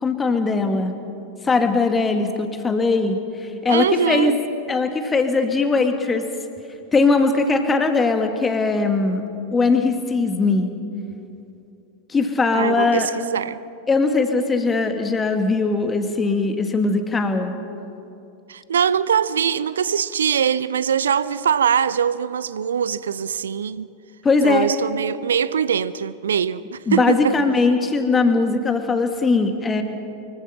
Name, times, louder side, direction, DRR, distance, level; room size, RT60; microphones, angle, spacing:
voice 1, 0.0-0.9 1.4-3.2 3.6-4.3 4.7-6.2 6.9-9.2 9.5-10.7 12.1-13.1 13.9-17.5 24.2-24.7 26.9-29.8, left 3 dB, 15° left, 2.0 m, -20 dB
voice 2, 3.7-4.4 12.5-13.6 18.5-23.9 24.4-27.4, right 8 dB, 65° right, 0.5 m, -22 dB
24.5 x 22.5 x 5.9 m
figure-of-eight pair, 90°, 0 cm